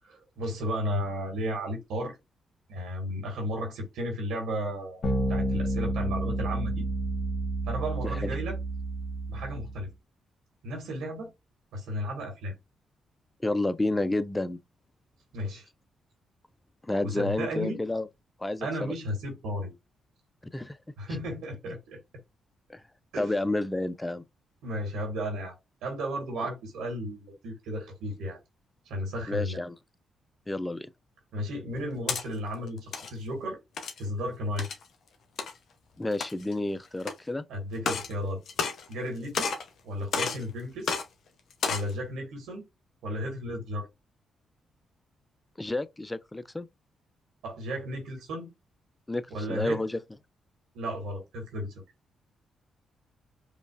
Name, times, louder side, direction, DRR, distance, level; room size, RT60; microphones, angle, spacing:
voice 1, 0.0-2.1 2.7-5.0 5.3-6.9 7.7-8.6 9.3-9.9 10.6-11.3 11.7-12.5 15.3-15.7 17.0-17.8 18.6-19.7 21.0-22.0 23.1-23.3 24.6-25.5 25.8-28.4 28.8-29.7 31.3-33.6 34.0-34.7 37.5-38.4 38.9-39.5 39.8-40.9 41.7-42.6 43.0-43.9 47.4-48.5 49.3-49.8 50.7-51.7, equal, 80° right, 1.6 m, -34 dB
sound 1, 5.0-9.8, right 1 dB, 50° left, 1.5 m, -30 dB
voice 2, 13.4-14.6 16.9-18.1 18.4-18.9 20.5-20.8 22.7-22.8 23.2-24.2 29.3-29.8 30.5-30.9 36.0-37.4 45.6-46.7 49.1-50.0, left 2 dB, 15° left, 0.4 m, -30 dB
sound 2, 31.7-32.2 32.8-33.1 33.8-34.0 34.6-34.8 35.4-35.5 36.1-36.5 37.0-37.1 37.8-38.1 38.5-39.1 39.3-39.7 40.1-40.4 40.8-41.0 41.5-41.9, left 5 dB, 65° left, 0.8 m, -31 dB
5.0 x 2.4 x 2.4 m
supercardioid pair, 55°, 0 cm